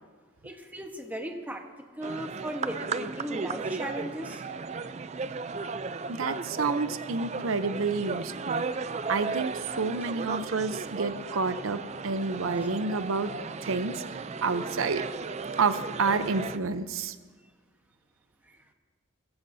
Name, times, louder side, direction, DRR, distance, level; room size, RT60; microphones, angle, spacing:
voice 1, 0.4-1.6 1.9-4.6 12.6-12.7 18.4-18.6, right 1 dB, 10° right, 3 dB, 1.1 m, -37 dB
sound 1, 2.0-16.6, right 4 dB, 35° right, 0.4 m, -35 dB
voice 2, 6.1-13.3 13.6-15.1 15.6-17.2, right 4 dB, 85° right, 11 dB, 0.7 m, -29 dB
21.0 x 15.0 x 2.7 m, 1.4 s
head